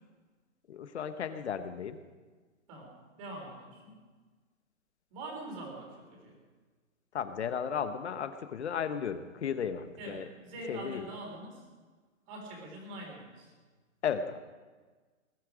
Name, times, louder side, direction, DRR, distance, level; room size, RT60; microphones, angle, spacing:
voice 1, 0.7-2.0 7.1-10.3 10.7-11.1 14.0-14.4, left 7 dB, 55° left, 10 dB, 1.2 m, -34 dB
voice 2, 2.7-4.0 5.1-6.4 10.0-11.6 12.3-13.5, right 2 dB, 25° right, 1 dB, 3.6 m, -44 dB
20.5 x 12.5 x 5.0 m, 1.4 s
hypercardioid pair, 170°, 39 cm